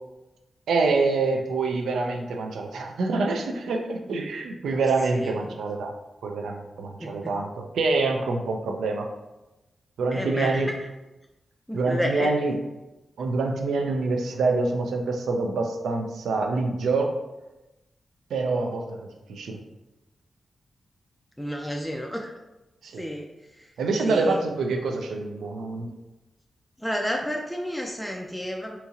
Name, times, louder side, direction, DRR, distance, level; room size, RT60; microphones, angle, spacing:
voice 1, 0.7-5.9 6.2-9.1 10.0-10.7 11.7-12.6 13.2-17.2 18.3-19.6 22.8-23.0 23.8-25.9, right 3 dB, 85° right, 3 dB, 0.3 m, -26 dB
voice 2, 5.1-5.5 7.0-7.4 10.1-10.6 11.7-12.3 21.4-22.3 23.0-23.3 23.5-23.7 24.1-24.4 26.8-28.8, equal, 5° left, 1 dB, 0.3 m, -31 dB
2.8 x 2.7 x 2.4 m, 1.0 s
supercardioid pair, 45°, 0 cm